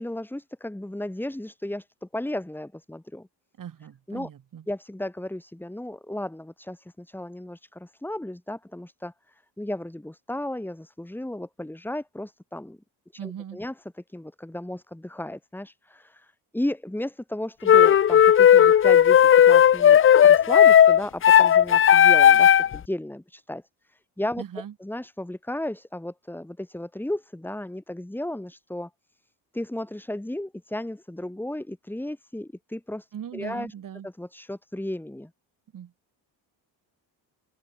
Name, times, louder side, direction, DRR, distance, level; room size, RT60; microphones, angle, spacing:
voice 1, 0.0-3.3 4.1-4.3 4.7-12.8 13.2-13.7 14.1-23.6 23.9-24.4 24.8-28.9 29.5-33.1 33.3-33.7 34.0-35.3, left 1 dB, 5° left, 4.1 m, -34 dB
voice 2, 3.6-4.7 13.2-13.6 24.4-24.7 33.1-34.1 35.7-35.9, right 9 dB, 50° right, 6.0 m, -39 dB
sound 1, 17.7-22.8, left 9 dB, 30° left, 0.5 m, -15 dB
cardioid pair, 125°, 41 cm